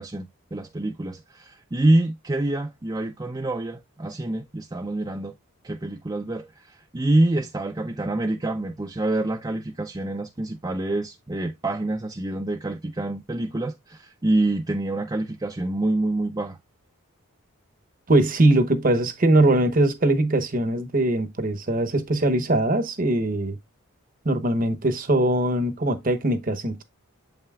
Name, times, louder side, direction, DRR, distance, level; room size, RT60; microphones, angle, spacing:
voice 1, 0.0-5.3 5.6-16.6, right 2 dB, 20° right, 0.5 m, -26 dB
voice 2, 18.1-23.6 24.2-26.8, right 1 dB, 40° right, 0.9 m, -21 dB
7.7 x 5.6 x 2.3 m
head